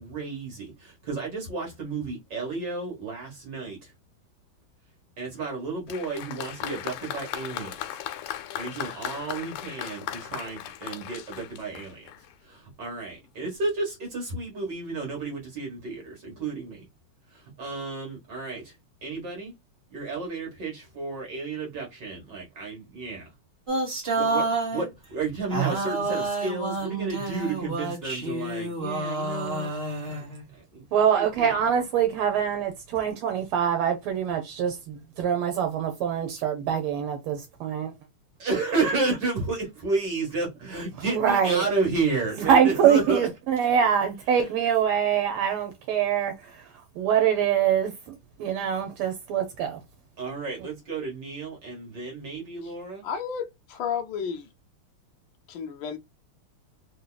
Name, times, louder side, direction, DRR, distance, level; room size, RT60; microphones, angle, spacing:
voice 1, 0.0-3.9 5.2-7.7 8.6-12.0 12.5-16.8 17.6-18.7 19.0-19.5 19.9-23.3 24.2-29.7 30.1-30.2 30.5-30.8 31.1-31.5 38.4-43.3 50.2-53.0, right 3 dB, 55° right, 1.8 m, -32 dB
Applause, 5.9-12.3 13.2-13.3, left 12 dB, 85° left, 1.5 m, -37 dB
sound 1, 23.7-24.9 25.5-30.4, right 3 dB, 35° right, 1.2 m, -29 dB
voice 2, 30.9-37.9 41.1-41.6 42.4-46.7 46.9-49.8 50.6-50.7, right 8 dB, 80° right, 1.6 m, -24 dB
voice 3, 53.0-54.5 55.5-56.0, left 7 dB, 70° left, 1.3 m, -32 dB
3.7 x 2.7 x 2.2 m
omnidirectional pair, 2.4 m